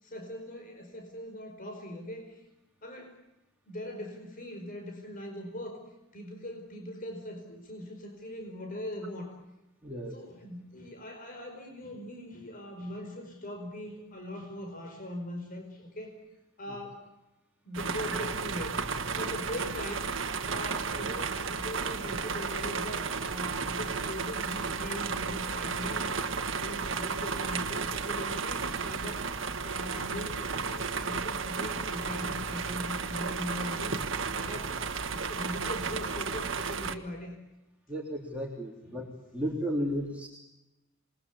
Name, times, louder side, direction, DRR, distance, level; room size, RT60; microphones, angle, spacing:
voice 1, 0.0-2.4 2.8-3.2 3.7-5.8 6.1-9.3 10.1-16.2 16.6-17.0 17.6-18.8 19.1-20.1 20.4-26.0 26.5-29.3 29.6-33.9 34.4-34.8 35.1-37.4 38.8-39.0 39.4-39.5, left 1 dB, 40° left, 3 dB, 4.8 m, -40 dB
voice 2, 9.8-10.2 34.3-34.6 37.9-39.1 39.3-40.3, equal, 5° right, -2 dB, 3.5 m, -34 dB
sound 1, 17.7-36.9, right 5 dB, 65° right, 1.5 m, -33 dB
27.5 x 21.5 x 8.4 m, 0.99 s
head